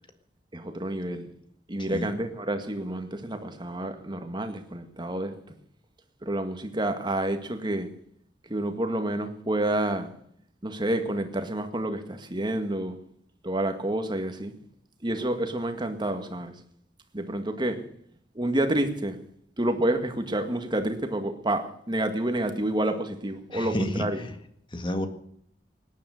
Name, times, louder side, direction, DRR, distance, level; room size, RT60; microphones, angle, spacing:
voice 1, 0.5-1.3 1.7-5.3 6.2-7.9 8.5-10.1 10.6-13.0 13.4-14.5 15.0-16.5 17.1-17.8 18.4-19.2 19.6-24.2, right 1 dB, 25° right, 7 dB, 2.0 m, -29 dB
voice 2, 23.5-24.3 24.7-25.1, left 1 dB, 30° left, 8 dB, 1.9 m, -30 dB
18.5 x 10.5 x 6.6 m, 0.67 s
head